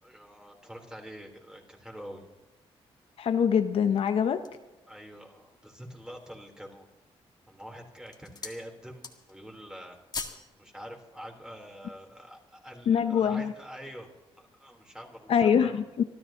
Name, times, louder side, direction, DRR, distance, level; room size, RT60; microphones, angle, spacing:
voice 1, 0.0-2.2 4.9-6.8 7.5-9.0 9.3-10.0 10.6-14.1 14.6-15.7, equal, 5° right, 2 dB, 3.7 m, -45 dB
voice 2, 3.2-4.4 12.9-13.5 15.3-16.0, left 7 dB, 65° left, 9 dB, 0.8 m, -24 dB
sound 1, 4.0-4.7 5.3-5.4 5.9-6.5 7.2-7.5 7.9-8.6 8.9-9.4 9.7-10.5 10.8-11.0, left 4 dB, 40° left, 1.9 m, -41 dB
26.0 x 13.5 x 3.0 m, 1.1 s
cardioid pair, 85°, 11 cm